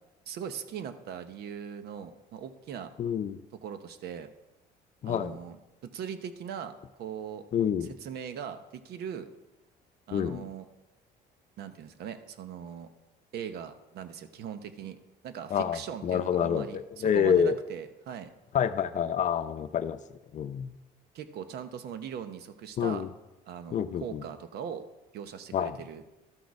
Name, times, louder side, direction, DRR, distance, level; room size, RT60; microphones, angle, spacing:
voice 1, 0.3-2.9 3.6-4.3 5.0-5.6 5.8-7.5 7.8-9.3 10.1-10.7 11.6-12.9 13.3-18.3 21.1-23.0 23.5-24.8 25.1-26.0, right 8 dB, 70° right, 10 dB, 0.9 m, -40 dB
voice 2, 3.0-3.4 5.0-5.4 7.5-7.9 10.1-10.4 15.5-17.6 18.5-20.0 20.3-20.8 22.8-23.1 23.7-24.2 25.5-25.8, left 8 dB, 45° left, 12 dB, 0.6 m, -28 dB
12.5 x 6.4 x 4.7 m, 1.0 s
cardioid pair, 110°, 17 cm